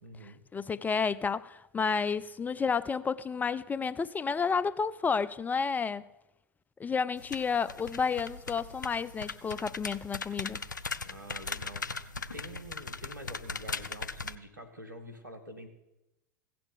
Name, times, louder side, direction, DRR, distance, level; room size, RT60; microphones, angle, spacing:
voice 1, 0.0-0.4 11.0-15.7, right 1 dB, 90° right, 1.7 m, -47 dB
voice 2, 0.5-6.0 6.8-10.6, left 5 dB, 15° left, 0.4 m, -31 dB
sound 1, 7.2-14.4, left 4 dB, 85° left, 0.5 m, -39 dB
16.0 x 6.8 x 6.8 m
figure-of-eight pair, 80°, 10 cm